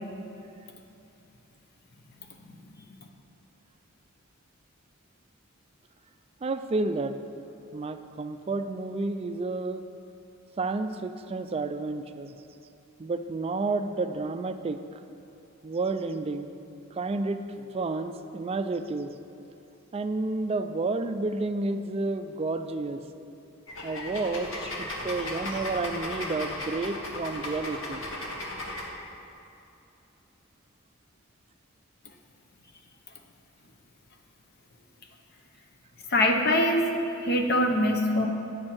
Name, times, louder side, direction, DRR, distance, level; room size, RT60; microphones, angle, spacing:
voice 1, 6.4-7.2 7.7-9.8 10.6-12.3 13.0-14.8 15.6-16.5 16.9-19.1 19.9-23.0 23.8-28.0, right 3 dB, 30° right, 9 dB, 0.3 m, -30 dB
sound 1, 23.7-28.9, left 1 dB, 70° left, 1.3 m, -36 dB
voice 2, 36.1-36.9 37.2-38.3, left 1 dB, 50° left, 3 dB, 0.8 m, -23 dB
9.5 x 4.4 x 7.6 m, 2.8 s
head